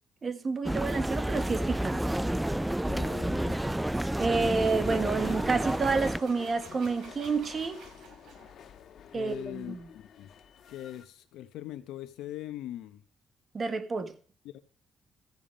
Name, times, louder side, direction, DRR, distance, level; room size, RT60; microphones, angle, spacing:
voice 1, 0.2-2.0 4.2-7.8 9.1-9.9 13.5-14.1, right 4 dB, 35° right, 1.6 m, -29 dB
sound 1, 0.6-6.2, right 1 dB, 5° right, 0.4 m, -30 dB
sound 2, 1.3-8.5, right 5 dB, 75° right, 5.6 m, -54 dB
voice 2, 2.9-3.8 9.1-10.3 10.7-13.0 14.5-14.6, left 12 dB, 90° left, 0.9 m, -41 dB
sound 3, 4.3-11.1, left 8 dB, 65° left, 2.1 m, -48 dB
14.5 x 7.1 x 5.1 m
cardioid pair, 90°, 0 cm